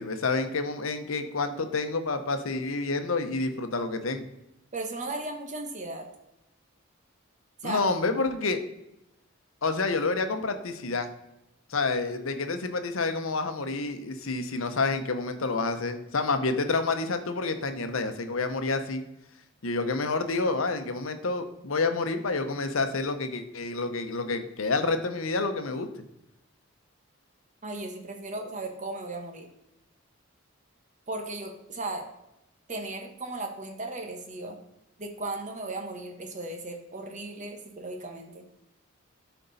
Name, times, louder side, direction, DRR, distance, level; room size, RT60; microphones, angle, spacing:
voice 1, 0.0-4.2 7.6-8.6 9.6-11.1 11.7-19.0 19.6-25.9, left 3 dB, 75° left, 8 dB, 0.9 m, -28 dB
voice 2, 4.7-6.0 7.6-7.8 27.6-29.5 31.1-32.0 32.7-34.6 35.0-38.4, right 2 dB, 35° right, 3 dB, 1.2 m, -36 dB
12.0 x 4.5 x 4.1 m, 0.87 s
head